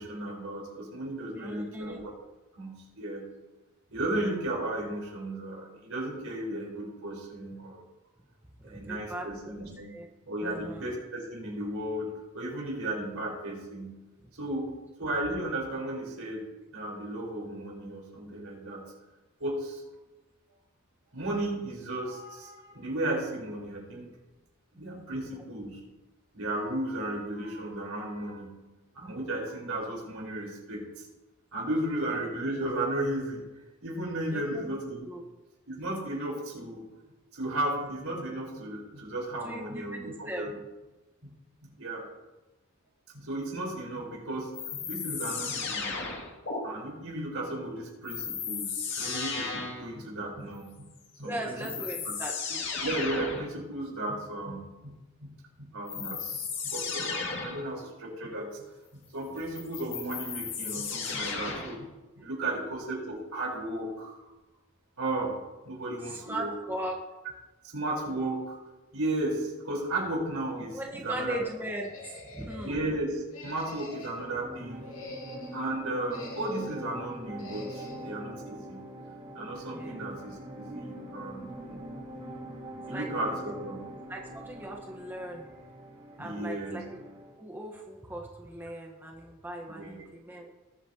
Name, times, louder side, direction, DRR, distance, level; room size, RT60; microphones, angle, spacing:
voice 1, 0.0-2.0 2.6-3.2 3.9-7.8 8.6-9.9 10.3-12.1 12.3-13.9 14.3-14.7 15.0-16.4 16.7-18.8 19.4-19.8 21.1-24.1 24.7-25.8 26.3-28.5 28.9-31.0 31.5-33.4 33.8-35.0 35.7-36.8 37.3-40.5 41.2-41.3 41.6-42.0 43.1-45.9 46.6-50.9 51.2-51.7 52.0-52.1 52.8-54.9 55.2-55.3 55.6-58.6 59.1-61.9 62.2-64.2 65.0-66.5 67.7-68.6 68.9-71.4 72.6-74.8 75.5-78.8 79.3-81.8 82.9-83.8 86.2-86.8 89.7-90.0, right 1 dB, 80° right, -2 dB, 4.1 m, -34 dB
voice 2, 1.4-2.0 8.6-10.1 10.4-10.8 25.3-25.4 34.3-34.8 35.1-35.2 39.4-40.5 51.2-52.7 62.2-62.6 66.0-67.0 70.7-72.8 79.7-80.1 82.5-83.1 84.1-85.6 86.2-86.8 87.3-90.5, right 1 dB, 10° right, 0 dB, 1.1 m, -39 dB
sound 1, 44.5-46.6 48.0-49.9 51.1-51.2 51.6-53.5 55.9-57.7 59.4-61.8, left 5 dB, 60° left, 2.2 m, -34 dB
sound 2, 71.8-72.7 73.3-74.3 74.7-75.6 76.1-76.8 77.4-78.1, left 2 dB, 75° left, 2.3 m, -45 dB
sound 3, 74.1-87.4, right 1 dB, 30° right, 3.5 m, -44 dB
19.5 x 8.4 x 2.9 m, 1.1 s
head